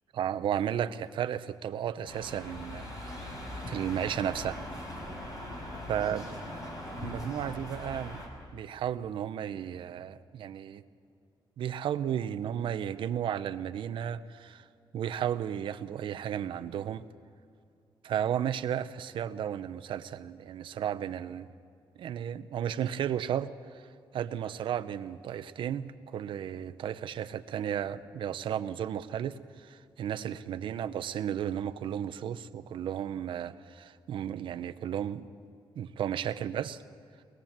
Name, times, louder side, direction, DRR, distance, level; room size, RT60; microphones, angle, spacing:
voice 1, 0.1-2.9 3.7-4.6 5.9-6.3 7.0-8.2 8.5-10.8 11.6-14.6 14.9-17.0 18.0-21.5 22.0-23.9 24.1-35.3 35.7-36.8, right 9 dB, 70° right, 11 dB, 0.8 m, -34 dB
sound 1, 2.1-8.3, left 1 dB, 45° left, 5.7 m, -40 dB
24.5 x 20.5 x 7.5 m, 2.4 s
wide cardioid pair, 150°, 9 cm